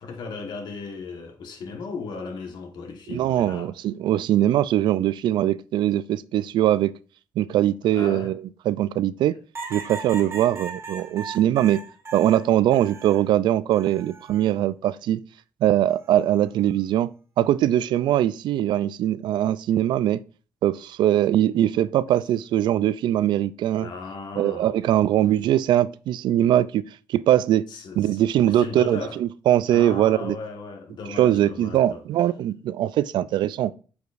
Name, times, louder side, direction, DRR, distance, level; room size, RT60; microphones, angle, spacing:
voice 1, 0.0-3.7 7.9-8.4 23.7-25.0 27.7-29.2 29.7-32.0, left 4 dB, 70° left, 1.4 m, -36 dB
voice 2, 3.1-6.9 7.4-8.4 8.7-9.4 9.7-11.8 12.1-15.2 15.6-17.1 17.4-20.2 20.6-23.9 24.4-26.8 27.1-27.7 28.0-30.4 31.2-33.7, right 12 dB, 75° right, 0.3 m, -21 dB
sound 1, 9.5-13.3 13.7-14.5 15.9-16.3, right 4 dB, 35° right, 1.8 m, -38 dB
8.1 x 4.8 x 2.6 m
cardioid pair, 75°, 8 cm